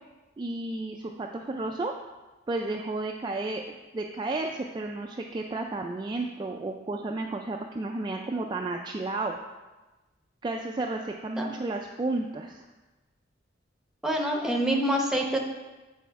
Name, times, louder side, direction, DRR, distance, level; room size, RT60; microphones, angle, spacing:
voice 1, 0.4-1.9 2.5-9.4 10.4-12.7, right 2 dB, 25° right, 1 dB, 0.3 m, -32 dB
voice 2, 14.0-15.4, right 1 dB, 5° right, 1 dB, 0.8 m, -26 dB
8.3 x 4.2 x 4.6 m, 1.1 s
head